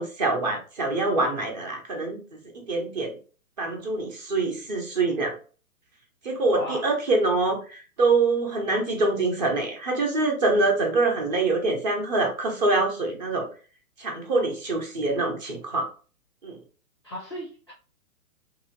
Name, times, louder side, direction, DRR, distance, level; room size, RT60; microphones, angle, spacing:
voice 1, 0.0-2.2 2.5-3.1 3.6-5.3 6.2-13.5 14.0-15.9 16.4-16.6, right 3 dB, 30° right, 2 dB, 0.7 m, -25 dB
voice 2, 6.5-6.9 17.0-17.7, left 1 dB, 20° left, -3 dB, 0.4 m, -36 dB
2.9 x 2.7 x 2.8 m, 0.37 s
hypercardioid pair, 150°, 45 cm